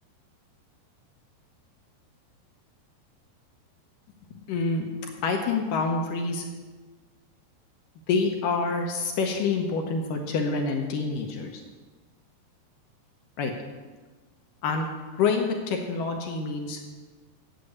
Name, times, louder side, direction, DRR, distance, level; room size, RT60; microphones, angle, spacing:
voice 1, 4.3-4.9 5.2-6.5 8.1-11.6 13.4-13.5 14.6-14.9 15.2-16.8, left 4 dB, 75° left, 3 dB, 2.0 m, -27 dB
9.1 x 8.3 x 8.4 m, 1.4 s
omnidirectional pair, 5.0 m